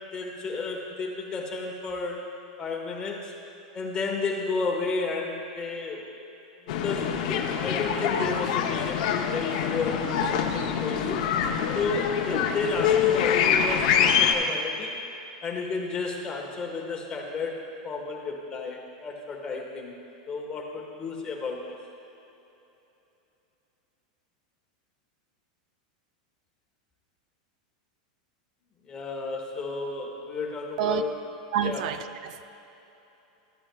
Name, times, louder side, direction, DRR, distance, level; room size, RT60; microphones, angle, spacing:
voice 1, 0.1-2.2 2.6-3.3 3.7-6.0 6.7-11.2 11.7-14.9 15.4-19.9 20.3-21.8 28.9-31.1 31.6-31.8, left 4 dB, 20° left, 0 dB, 1.3 m, -32 dB
sound 1, 6.7-14.3, left 8 dB, 60° left, 0.7 m, -25 dB
voice 2, 31.5-32.4, right 10 dB, 65° right, 10 dB, 0.4 m, -28 dB
14.0 x 8.7 x 2.3 m, 3.0 s
supercardioid pair, 140°, 4 cm